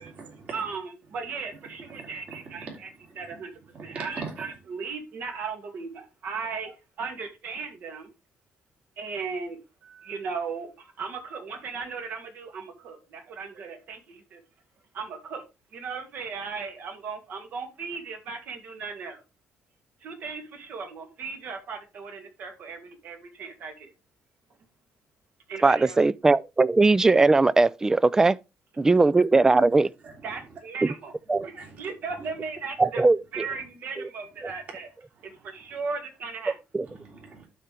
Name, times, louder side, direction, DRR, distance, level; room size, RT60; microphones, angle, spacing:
voice 1, 0.0-0.6 1.9-2.8 3.0-3.4 3.7-4.5 29.6-29.7 30.0-30.4 31.3-31.8 32.2-32.3 33.5-33.6 36.8-37.5, right 4 dB, 40° right, 3.0 m, -42 dB
voice 2, 0.5-2.9 3.2-8.1 9.0-14.4 14.9-15.4 15.7-19.2 20.0-23.9 25.5-26.0 30.2-31.1 31.4-33.0 33.3-34.9 35.2-36.6, right 5 dB, 60° right, 2.1 m, -37 dB
voice 3, 25.6-28.4 28.8-29.9 31.3-31.5 32.8-33.4 36.7-36.9, right 3 dB, 15° right, 0.3 m, -20 dB
12.0 x 4.4 x 3.3 m
cardioid pair, 135°, 4 cm